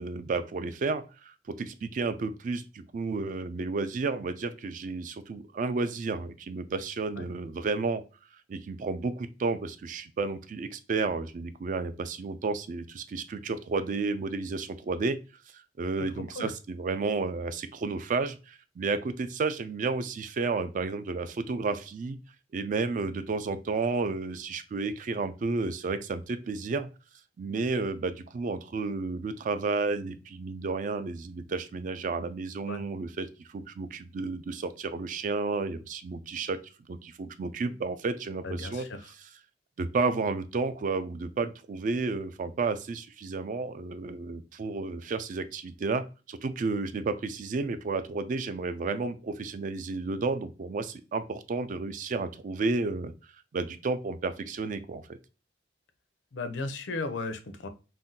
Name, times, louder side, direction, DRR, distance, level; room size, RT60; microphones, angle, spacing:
voice 1, 0.0-8.0 8.5-15.2 15.5-22.2 22.5-26.9 27.4-36.6 36.9-38.9 39.8-53.1 53.5-55.2, right 3 dB, 45° right, 11 dB, 0.3 m, -32 dB
voice 2, 38.4-39.1 56.3-57.7, left 3 dB, 85° left, 9 dB, 0.5 m, -35 dB
2.6 x 2.1 x 3.7 m, 0.32 s
head